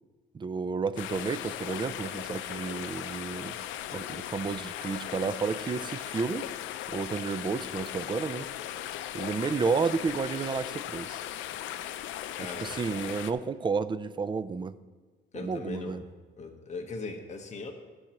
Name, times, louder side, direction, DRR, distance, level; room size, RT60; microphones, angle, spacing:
voice 1, 0.3-3.6 3.9-6.5 6.9-8.5 9.1-11.2 12.4-14.8 15.3-16.0, right 5 dB, 25° right, 15 dB, 0.4 m, -31 dB
sound 1, 1.0-13.3, left 12 dB, 85° left, 0.4 m, -38 dB
voice 2, 12.3-12.8 15.3-16.0 16.4-17.7, left 3 dB, 35° left, 2 dB, 1.1 m, -39 dB
15.0 x 6.3 x 3.0 m, 1.4 s
cardioid pair, 100°, 19 cm